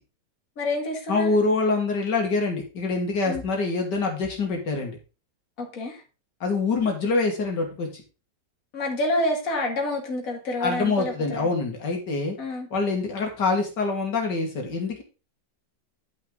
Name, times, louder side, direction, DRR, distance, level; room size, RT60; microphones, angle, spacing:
voice 1, 0.6-1.3 3.3-3.4 5.6-6.0 8.7-11.5 12.4-12.7, left 1 dB, 50° left, 1 dB, 2.3 m, -28 dB
voice 2, 1.1-5.0 6.4-7.9 10.6-12.4 12.7-15.0, left 3 dB, 75° left, 2 dB, 2.4 m, -25 dB
10.5 x 5.9 x 3.8 m, 0.32 s
omnidirectional pair, 1.9 m